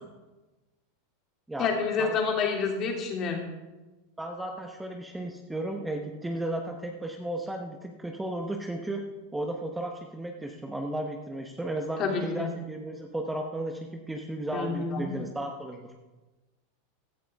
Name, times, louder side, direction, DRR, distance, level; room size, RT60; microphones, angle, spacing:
voice 1, 1.6-3.4 12.0-12.5 14.5-15.1, left 5 dB, 40° left, 1 dB, 2.9 m, -28 dB
voice 2, 4.2-9.0 9.3-15.9, right 1 dB, 5° right, 2 dB, 1.1 m, -34 dB
15.5 x 11.0 x 3.6 m, 1.1 s
supercardioid pair, 125°, 0 cm